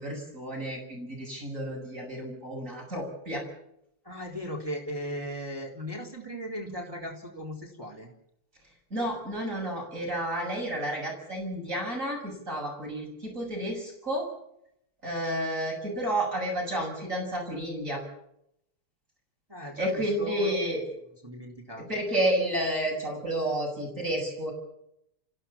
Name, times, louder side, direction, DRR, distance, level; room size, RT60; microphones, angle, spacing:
voice 1, 0.0-3.4 8.9-14.3 15.0-18.0 19.8-21.0 21.8-24.5, right 1 dB, 35° right, 0 dB, 7.5 m, -31 dB
voice 2, 4.1-8.1 19.5-20.5 21.2-21.9, equal, 10° right, 0 dB, 3.8 m, -37 dB
29.0 x 16.0 x 7.3 m, 0.77 s
omnidirectional pair, 2.4 m